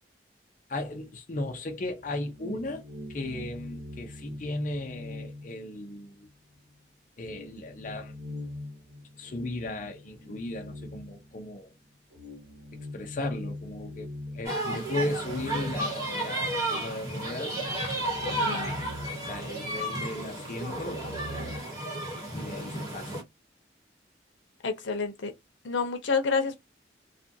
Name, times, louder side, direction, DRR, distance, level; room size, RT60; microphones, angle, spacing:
voice 1, 0.7-2.8 3.1-6.3 7.2-8.2 9.2-11.7 12.9-17.5 18.2-21.2 22.3-23.1, left 2 dB, 45° left, 0.5 m, -36 dB
sound 1, 2.0-6.3 6.7-6.8 7.2-11.6 12.1-16.8 17.1-17.2 17.6-20.1 20.4-21.6, left 1 dB, 70° right, 1.2 m, -42 dB
sound 2, 14.4-23.2, right 1 dB, 15° right, 1.1 m, -33 dB
voice 2, 18.4-18.7 24.6-25.3 25.6-26.6, left 4 dB, 85° left, 0.7 m, -29 dB
2.4 x 2.2 x 2.6 m
head